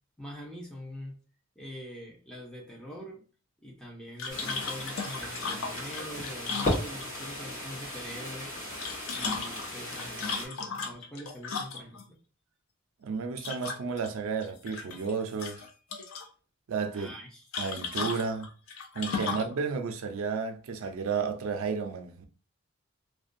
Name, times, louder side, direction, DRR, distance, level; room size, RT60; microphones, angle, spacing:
voice 1, 0.2-1.2 1.6-3.2 3.6-8.5 9.1-12.2 16.9-17.5 19.2-19.4, equal, 5° left, 0.6 m, -44 dB
sound 1, 4.2-7.3 8.6-12.0 13.4-14.1 14.4-15.1 15.4-16.3 17.5-19.5, left 5 dB, 70° left, 0.4 m, -36 dB
sound 2, 4.3-10.5, left 1 dB, 40° left, 1.1 m, -36 dB
voice 2, 13.0-15.6 16.7-17.1 17.6-18.5 18.9-22.2, right 5 dB, 75° right, 0.4 m, -32 dB
2.4 x 2.2 x 2.5 m
head